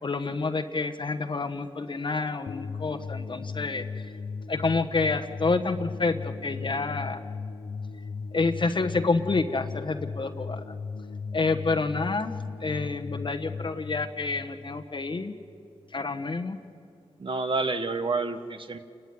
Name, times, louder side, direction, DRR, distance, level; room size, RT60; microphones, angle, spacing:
voice 1, 0.0-4.1 4.5-7.2 8.3-10.7 11.3-15.3 15.9-16.6, left 3 dB, 50° left, 5 dB, 1.2 m, -28 dB
sound 1, 2.5-15.6, left 4 dB, 70° left, 0.8 m, -37 dB
voice 2, 17.2-18.8, right 3 dB, 50° right, 9 dB, 1.4 m, -29 dB
29.0 x 13.5 x 9.6 m, 2.5 s
cardioid pair, 65°, 11 cm